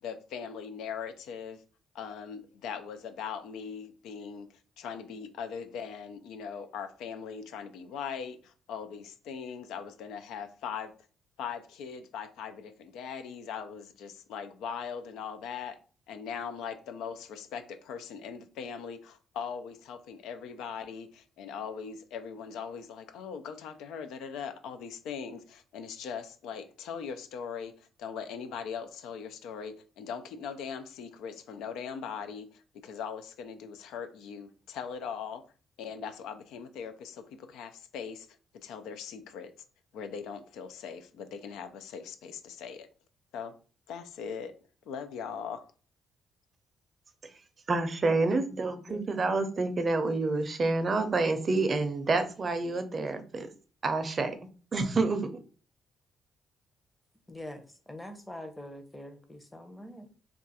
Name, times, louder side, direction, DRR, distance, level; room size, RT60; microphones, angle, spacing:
voice 1, 0.0-1.6 1.9-10.9 11.4-15.8 16.1-35.5 35.8-38.3 38.5-39.5 39.9-42.9 43.3-43.6 43.9-44.5 44.9-45.7, left 7 dB, 90° left, 0.4 m, -40 dB
voice 2, 47.7-53.5 53.8-54.3 54.7-55.3, right 3 dB, 40° right, 0.5 m, -28 dB
voice 3, 48.8-49.4 57.3-60.2, left 1 dB, 10° left, 0.7 m, -44 dB
2.4 x 2.3 x 4.0 m
cardioid pair, 90°, 0 cm